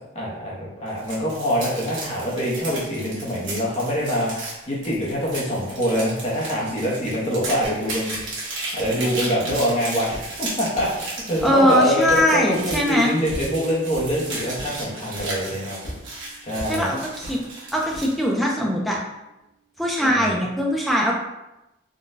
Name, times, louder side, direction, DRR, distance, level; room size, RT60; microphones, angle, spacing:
voice 1, 0.1-8.1 8.7-15.8 16.4-16.9 20.0-20.4, equal, 35° left, -5 dB, 0.8 m, -25 dB
sound 1, 0.9-18.2, right 2 dB, 85° right, 1.1 m, -35 dB
sound 2, 8.2-8.3 8.8-9.1 9.5-9.7 10.1-11.0 11.4-11.6 12.0-12.3 12.7-12.9 13.3-13.5 13.9-14.2 14.5-14.8 15.2-15.5 15.8-16.0 16.6-16.8 17.2-17.4 17.9-18.1, equal, 55° left, 1.1 m, -37 dB
voice 2, 11.4-13.1 16.7-17.4 17.7-19.0 19.8-21.1, equal, ahead, -3 dB, 0.4 m, -21 dB
sound 3, 11.6-18.3, right 8 dB, 80° left, 1.3 m, -46 dB
3.8 x 2.2 x 2.6 m, 0.94 s
head